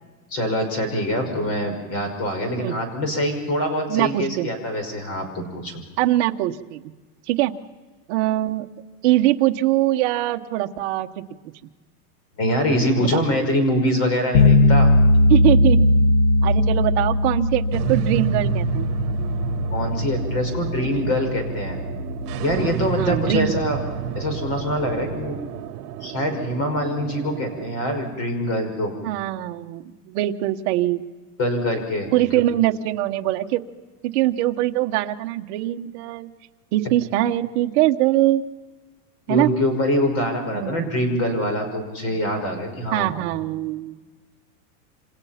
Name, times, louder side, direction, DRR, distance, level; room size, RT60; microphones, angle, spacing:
voice 1, 0.3-5.8 12.4-14.9 19.7-21.8 22.4-23.8 24.2-25.4 26.0-28.9 31.4-32.3 39.3-43.1, equal, 30° left, 6 dB, 5.7 m, -24 dB
voice 2, 3.9-4.5 6.0-6.8 7.3-7.5 8.1-8.7 9.0-11.2 13.0-13.2 15.3-15.9 16.4-18.9 20.9-21.1 23.0-23.7 29.0-31.0 32.1-33.6 34.0-36.3 36.7-38.4 39.3-39.5 40.5-41.1 42.9-44.0, right 15 dB, 45° right, 6 dB, 1.2 m, -22 dB
sound 1, 14.3-25.2, left 2 dB, 45° left, 1.4 m, -20 dB
sound 2, 17.7-27.7, right 11 dB, 75° right, 1.3 m, -31 dB
28.5 x 26.5 x 5.8 m, 1.3 s
supercardioid pair, 170°, 46 cm